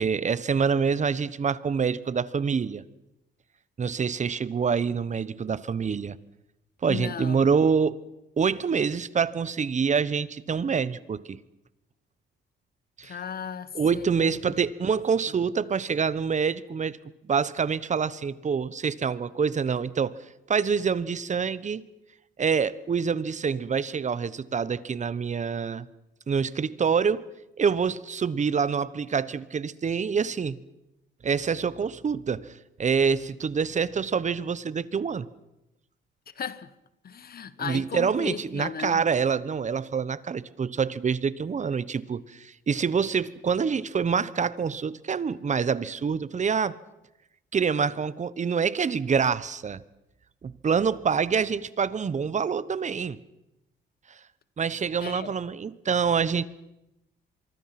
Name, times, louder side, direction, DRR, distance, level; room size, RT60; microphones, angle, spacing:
voice 1, 0.0-2.8 3.8-6.2 6.8-8.0 8.4-11.4 13.0-13.2 13.7-17.0 17.3-20.2 20.5-21.9 22.4-25.9 26.3-27.3 27.6-30.6 31.2-35.3 37.6-46.8 47.5-49.8 50.4-53.2 54.1-54.2 54.6-56.5, right 6 dB, 35° right, 1.1 m, -26 dB
voice 2, 6.9-7.4 13.0-14.4 36.3-36.7 37.0-39.0 55.0-55.3, left 7 dB, 50° left, 1.4 m, -36 dB
24.5 x 24.0 x 6.0 m
cardioid pair, 90°, 20 cm